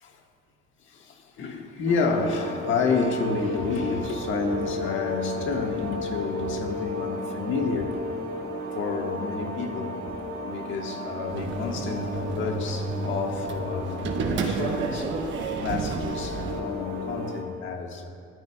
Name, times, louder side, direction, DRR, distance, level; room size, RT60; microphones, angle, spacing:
voice 1, 0.9-8.0 8.7-10.0 10.4-15.3 15.6-18.1, left 5 dB, 75° left, 2 dB, 1.5 m, -30 dB
sound 1, 1.9-17.4, equal, 90° right, 1.8 m, -34 dB
sound 2, 11.3-16.6, right 3 dB, 70° right, 1.1 m, -31 dB
27.5 x 9.4 x 2.3 m, 2.5 s
cardioid pair, 90°, 20 cm